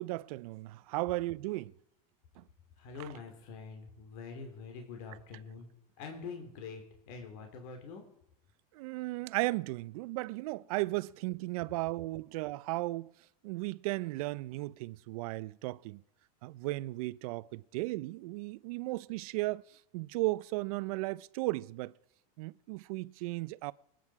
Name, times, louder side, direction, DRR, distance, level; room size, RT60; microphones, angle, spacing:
voice 1, 0.0-1.7 2.4-2.5 3.0-3.1 8.7-13.1 13.4-16.0 16.4-19.6 19.9-21.9 22.4-23.7, right 20 dB, 70° right, 0.6 m, -35 dB
voice 2, 2.8-5.7 6.0-8.0, left 5 dB, 60° left, 3.1 m, -45 dB
25.5 x 9.4 x 4.8 m
supercardioid pair, 145°, 19 cm